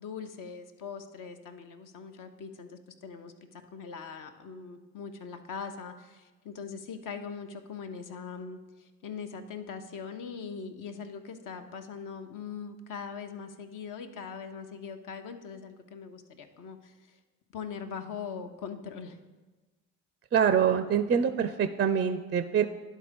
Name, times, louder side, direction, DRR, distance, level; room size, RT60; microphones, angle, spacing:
voice 1, 0.0-17.2 17.5-19.2, left 6 dB, 55° left, 6 dB, 0.9 m, -41 dB
voice 2, 20.3-22.6, right 7 dB, 30° right, 9 dB, 0.4 m, -25 dB
11.0 x 3.7 x 5.1 m, 1.2 s
hypercardioid pair, 60°, 38 cm